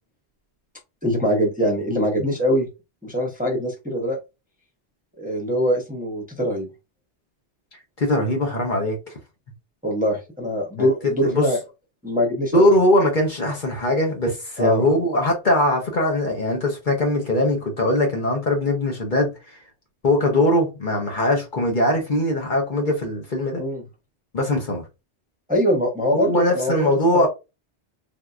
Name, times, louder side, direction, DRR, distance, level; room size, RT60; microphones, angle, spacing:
voice 1, 1.0-2.7 3.0-4.2 5.2-6.7 9.8-11.6 12.0-12.7 14.6-14.9 23.6-23.8 25.5-27.3, equal, 10° right, 0.8 m, -23 dB
voice 2, 8.0-9.0 10.8-11.5 12.5-19.3 20.0-23.6 24.3-24.8 26.1-27.3, left 1 dB, 50° left, 1.0 m, -21 dB
3.6 x 2.8 x 2.3 m
omnidirectional pair, 1.1 m